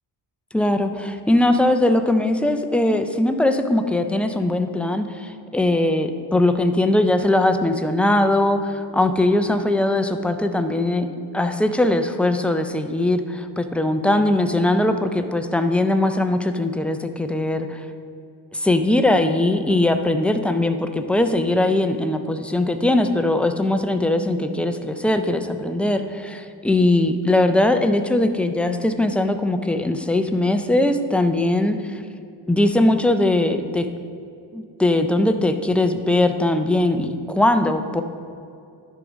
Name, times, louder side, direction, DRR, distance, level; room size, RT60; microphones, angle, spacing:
voice 1, 0.5-11.1 11.3-17.9 18.5-32.0 32.5-33.9 34.5-38.0, left 1 dB, 5° left, 7 dB, 0.3 m, -20 dB
11.0 x 3.7 x 5.1 m, 2.5 s
cardioid pair, 95°, 46 cm